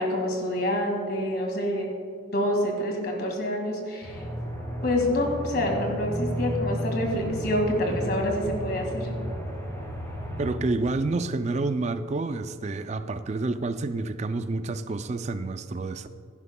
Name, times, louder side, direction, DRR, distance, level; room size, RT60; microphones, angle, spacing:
voice 1, 0.0-1.9 2.3-4.2 4.8-9.1, left 1 dB, 50° left, 1 dB, 2.0 m, -27 dB
Aircraft, 4.0-10.5, equal, 15° left, 2.4 m, -33 dB
voice 2, 10.4-16.1, right 3 dB, 35° right, 11 dB, 0.3 m, -29 dB
15.5 x 11.0 x 2.2 m, 2.4 s
head